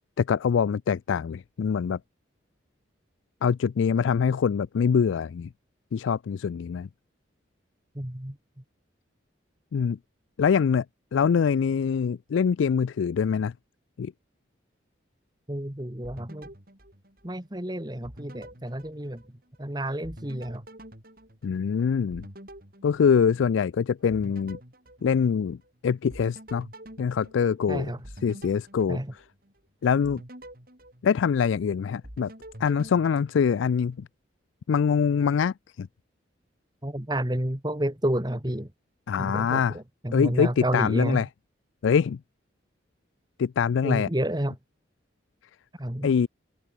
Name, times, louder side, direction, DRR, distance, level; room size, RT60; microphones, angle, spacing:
voice 1, 0.2-2.0 3.4-5.5 5.9-6.9 9.7-10.0 10.4-10.8 11.1-13.5 14.0-14.1 21.4-22.2 22.8-24.6 25.0-25.6 25.8-26.7 27.0-27.9 28.2-29.0 29.8-30.2 31.0-32.3 32.6-34.1 34.7-35.9 39.1-39.8 40.1-41.3 41.8-42.2 43.4-44.1 46.0-46.3, left 6 dB, 80° left, 0.3 m, -24 dB
voice 2, 8.0-8.4 15.5-16.5 17.2-19.2 19.6-20.6 27.7-28.0 28.9-29.1 36.8-38.7 39.2-41.2 43.8-44.6 45.8-46.1, right 1 dB, 20° right, 1.8 m, -30 dB
sound 1, 16.0-17.6 18.0-19.7 20.0-23.7 24.1-25.7 26.1-29.6 30.0-31.7 32.0-34.0, right 1 dB, 50° right, 7.7 m, -47 dB
head